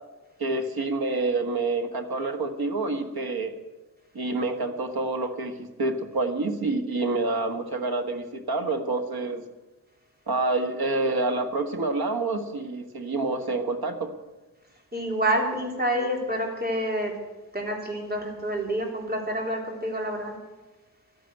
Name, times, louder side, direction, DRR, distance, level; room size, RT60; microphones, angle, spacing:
voice 1, 0.4-3.5 4.1-9.4 10.3-14.1, right 3 dB, 85° right, 6 dB, 1.6 m, -27 dB
voice 2, 14.9-17.1 17.5-20.4, right 1 dB, 25° right, 0 dB, 3.5 m, -28 dB
12.5 x 11.0 x 9.0 m, 1.1 s
wide cardioid pair, 120°, 36 cm